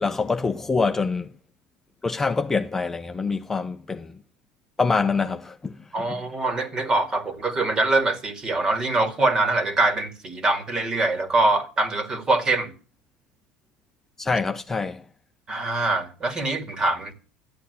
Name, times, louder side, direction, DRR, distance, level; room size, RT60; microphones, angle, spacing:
voice 1, 0.0-1.3 2.0-4.1 4.8-6.2 14.2-15.0, left 4 dB, 15° left, 0.8 m, -25 dB
voice 2, 5.9-12.7 15.5-17.1, right 2 dB, 25° right, 2.4 m, -23 dB
12.5 x 8.5 x 8.1 m
supercardioid pair, 120°, 3 cm